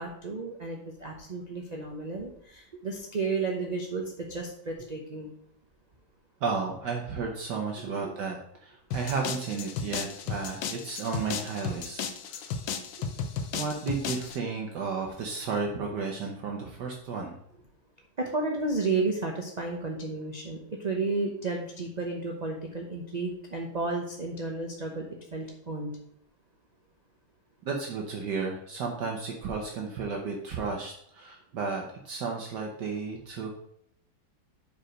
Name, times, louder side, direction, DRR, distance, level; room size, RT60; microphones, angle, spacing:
voice 1, 0.0-5.3 18.2-25.1 25.3-25.9, right 3 dB, 45° right, 1 dB, 0.5 m, -32 dB
voice 2, 6.4-12.5 13.5-17.3 27.6-33.6, right 4 dB, 65° right, 1 dB, 1.5 m, -33 dB
sound 1, 8.9-14.4, left 6 dB, 75° left, 1.4 m, -34 dB
5.3 x 4.8 x 6.3 m, 0.71 s
omnidirectional pair, 2.1 m